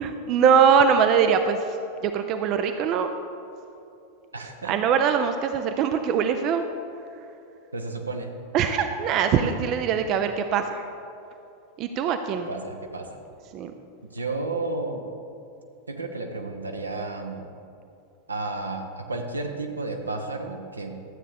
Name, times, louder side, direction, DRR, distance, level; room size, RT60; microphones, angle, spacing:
voice 1, 0.0-1.8 2.0-3.1 4.6-6.6 8.5-10.9 11.8-12.5 13.5-13.7, right 7 dB, 35° right, 7 dB, 0.5 m, -22 dB
voice 2, 4.3-4.7 7.7-8.3 12.5-13.1 14.1-15.0 15.9-17.5 18.3-21.0, right 3 dB, 80° right, 4 dB, 0.9 m, -32 dB
12.5 x 8.3 x 3.5 m, 2.7 s
figure-of-eight pair, 90°, 0 cm